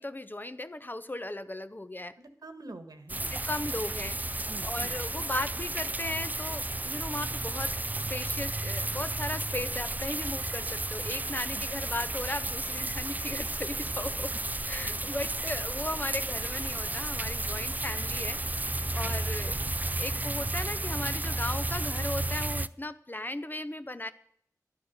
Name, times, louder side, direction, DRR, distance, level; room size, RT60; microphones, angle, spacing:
voice 1, 0.0-2.1 3.3-14.3 14.6-19.6 20.0-24.1, left 1 dB, 30° left, 11 dB, 0.7 m, -37 dB
voice 2, 2.2-3.3 4.4-5.0 11.5-11.6 19.0-19.3, right 2 dB, 75° right, 7 dB, 1.5 m, -46 dB
sound 1, 3.1-22.7, right 2 dB, 25° right, 0.4 m, -33 dB
12.0 x 10.5 x 6.5 m, 0.69 s
wide cardioid pair, 55°, 6 cm